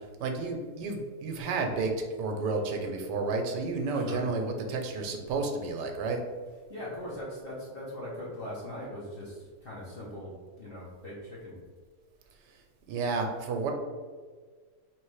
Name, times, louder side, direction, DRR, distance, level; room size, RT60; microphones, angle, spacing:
voice 1, 0.0-1.9 2.2-6.2 12.9-13.7, right 3 dB, 80° right, 3 dB, 1.2 m, -31 dB
voice 2, 3.9-4.2 6.5-11.6, left 1 dB, 45° left, -6 dB, 0.8 m, -40 dB
3.2 x 3.1 x 4.7 m, 1.5 s
omnidirectional pair, 1.9 m